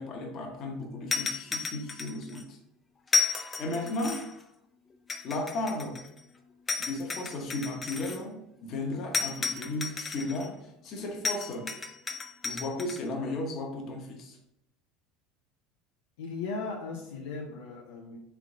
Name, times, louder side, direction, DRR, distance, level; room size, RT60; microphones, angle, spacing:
voice 1, 0.0-2.6 3.6-4.3 5.2-6.0 6.8-11.7 12.4-14.4, left 2 dB, 50° left, 2 dB, 1.0 m, -35 dB
sound 1, 1.1-2.4 3.1-4.4 5.1-6.2 6.7-8.2 9.1-10.5 11.2-13.0, left 4 dB, 20° left, 0.5 m, -32 dB
voice 2, 16.2-18.2, left 4 dB, 80° left, 0 dB, 0.6 m, -37 dB
3.6 x 3.4 x 3.6 m, 0.79 s
hypercardioid pair, 85°, 0 cm